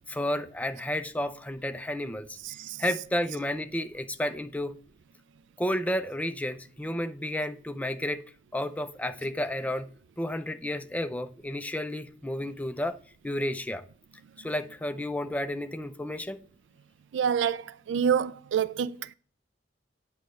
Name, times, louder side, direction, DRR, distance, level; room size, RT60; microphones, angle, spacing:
voice 1, 0.1-2.4 2.8-4.7 5.6-8.2 8.5-9.9 10.2-13.0 13.2-13.8 14.4-16.4, left 1 dB, 10° left, 0.4 m, -31 dB
voice 2, 2.5-2.8 17.1-19.1, right 7 dB, 80° right, 0.3 m, -27 dB
8.5 x 5.1 x 3.1 m
head